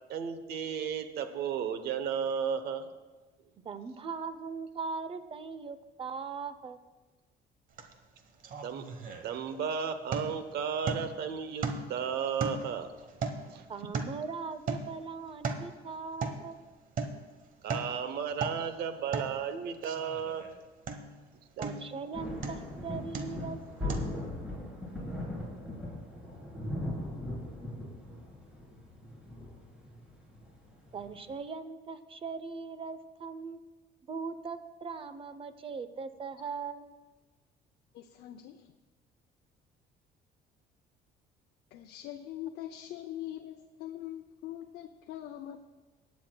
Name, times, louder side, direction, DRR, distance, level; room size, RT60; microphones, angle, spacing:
voice 1, 0.1-2.9 8.6-8.8 9.2-12.9 13.5-13.6 17.6-20.4 21.6-21.7, right 7 dB, 75° right, 0.9 m, -34 dB
voice 2, 3.6-6.8 13.7-16.6 21.6-24.4 30.9-33.6 34.1-36.9, right 5 dB, 30° right, 0.7 m, -40 dB
sound 1, 7.8-7.9 8.2-9.7 10.1-10.5 10.9-11.2 11.6-12.0 12.4-14.3 14.7-15.0 15.3-15.7 16.2-16.5 17.0-17.2 17.5-18.0 18.3-18.7 19.1-19.4 19.8-20.5 20.9-21.2 21.6-22.0 22.4-22.7 23.1-23.5 23.9-24.0, right 4 dB, 55° right, 1.1 m, -36 dB
sound 2, 22.1-31.3, left 1 dB, 5° right, 3.7 m, -39 dB
voice 3, 37.9-38.7 41.7-45.6, left 12 dB, 75° left, 0.6 m, -42 dB
19.5 x 9.5 x 2.3 m
cardioid pair, 110°, 17 cm